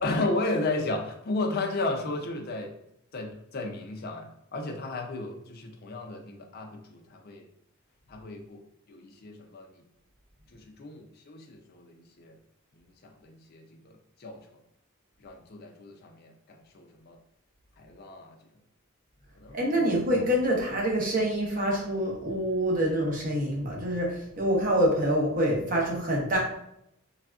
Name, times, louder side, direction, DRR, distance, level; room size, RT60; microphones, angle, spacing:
voice 1, 0.0-2.7 3.1-7.5 8.1-8.6 8.9-9.8 10.5-12.4 12.7-13.9 14.2-14.5 15.2-17.2 17.8-18.4 19.4-20.0, left 2 dB, 45° left, 4 dB, 0.4 m, -34 dB
voice 2, 19.5-26.4, equal, 40° right, -2 dB, 0.8 m, -26 dB
3.3 x 2.4 x 2.3 m, 0.77 s
head